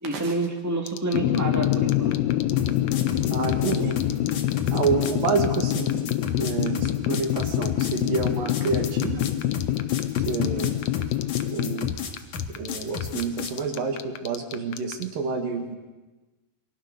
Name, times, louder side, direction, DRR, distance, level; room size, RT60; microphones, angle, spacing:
voice 1, 0.0-2.1, right 2 dB, 10° right, 1 dB, 0.9 m, -28 dB
sound 1, 0.9-15.0, left 11 dB, 90° left, 1.5 m, -37 dB
sound 2, 1.1-11.9, left 13 dB, 75° left, 2.6 m, -26 dB
sound 3, 2.6-13.6, left 7 dB, 55° left, 3.2 m, -33 dB
voice 2, 3.3-4.0 4.7-6.0 6.3-9.3 10.3-10.7 11.5-11.9 12.6-15.8, right 4 dB, 60° right, 4 dB, 3.6 m, -28 dB
28.0 x 23.5 x 6.9 m, 1.1 s
omnidirectional pair, 4.7 m